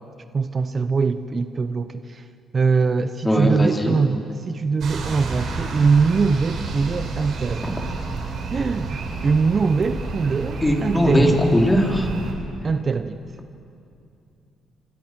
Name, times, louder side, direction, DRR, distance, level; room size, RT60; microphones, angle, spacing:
voice 1, 0.3-2.3 2.5-7.7 8.5-11.4 12.6-13.2, right 4 dB, 40° right, 10 dB, 0.9 m, -22 dB
voice 2, 3.2-4.0 7.6-7.7 10.6-12.1, equal, 15° left, 1 dB, 3.9 m, -19 dB
sound 1, 4.8-12.3, right 3 dB, 65° right, 5.5 m, -30 dB
28.0 x 26.0 x 6.3 m, 2.6 s
cardioid pair, 90°, 0 cm